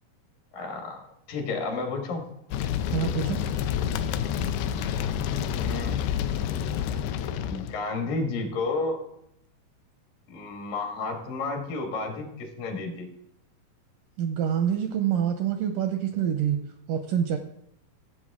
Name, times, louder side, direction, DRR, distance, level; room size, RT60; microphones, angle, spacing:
voice 1, 0.5-2.2 5.6-6.0 7.5-9.1 10.3-13.1, left 3 dB, 65° left, 2 dB, 3.3 m, -31 dB
sound 1, 2.5-7.8, left 8 dB, 85° left, 2.6 m, -28 dB
voice 2, 2.9-3.4 14.2-16.6 16.9-17.4, right 9 dB, 80° right, 6 dB, 1.9 m, -26 dB
15.5 x 7.7 x 3.6 m, 0.78 s
omnidirectional pair, 4.4 m